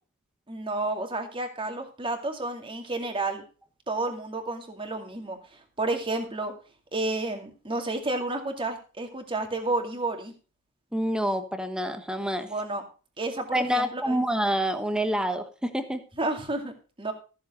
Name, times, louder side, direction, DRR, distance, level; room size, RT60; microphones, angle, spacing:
voice 1, 0.5-3.4 3.9-5.4 5.8-6.5 6.9-10.3 12.5-12.8 13.2-14.2 16.2-17.1, right 2 dB, 25° right, 4 dB, 2.4 m, -31 dB
voice 2, 10.9-12.5 13.5-16.0, equal, 5° right, 9 dB, 1.2 m, -27 dB
14.5 x 7.1 x 5.3 m, 0.35 s
head